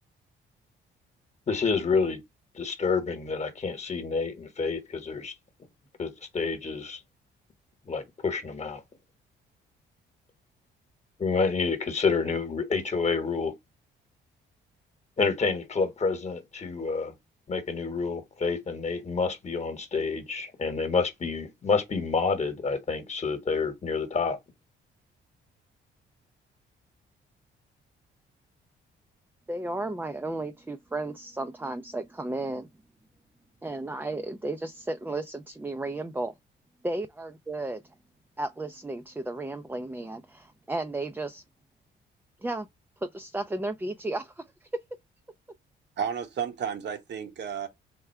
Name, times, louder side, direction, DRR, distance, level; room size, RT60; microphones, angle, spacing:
voice 1, 1.5-2.2 2.5-5.3 6.0-7.0 7.9-8.8 11.2-13.5 15.2-17.1 17.5-24.4, left 4 dB, 35° left, 1.2 m, -28 dB
voice 2, 29.5-32.7 33.6-36.3 36.8-37.8 38.4-41.4 42.4-42.7 43.0-44.4 44.7-44.8, right 2 dB, 10° right, 0.4 m, -33 dB
voice 3, 46.0-47.7, right 7 dB, 60° right, 1.0 m, -32 dB
3.6 x 2.2 x 4.4 m
cardioid pair, 90°, 20 cm